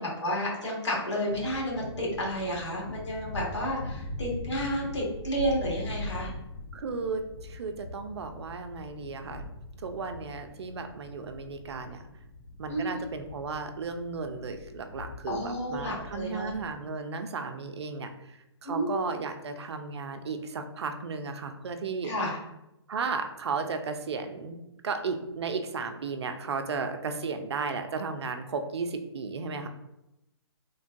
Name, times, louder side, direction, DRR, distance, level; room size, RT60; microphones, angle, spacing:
voice 1, 0.0-6.3 12.7-13.0 15.3-16.5 18.6-19.1 22.0-22.4, equal, 85° left, -5 dB, 1.5 m, -31 dB
sound 1, 1.3-16.7, left 2 dB, 40° left, 0.4 m, -42 dB
voice 2, 6.7-9.4 9.8-12.0 12.6-22.1 22.9-29.7, right 4 dB, 70° right, 7 dB, 0.4 m, -34 dB
3.2 x 2.2 x 2.5 m, 0.90 s
hypercardioid pair, 145°, 15 cm